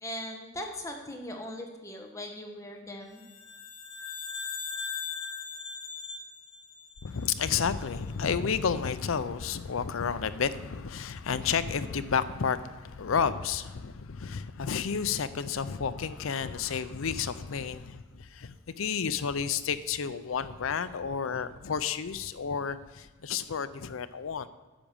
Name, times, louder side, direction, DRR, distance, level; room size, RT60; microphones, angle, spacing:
voice 1, 0.0-3.2, left 1 dB, 15° left, 2 dB, 1.1 m, -39 dB
sound 1, 3.2-7.7, left 5 dB, 35° left, 1.6 m, -39 dB
voice 2, 7.0-24.5, left 6 dB, 75° left, 13 dB, 0.5 m, -31 dB
10.5 x 6.1 x 7.1 m, 1.3 s
head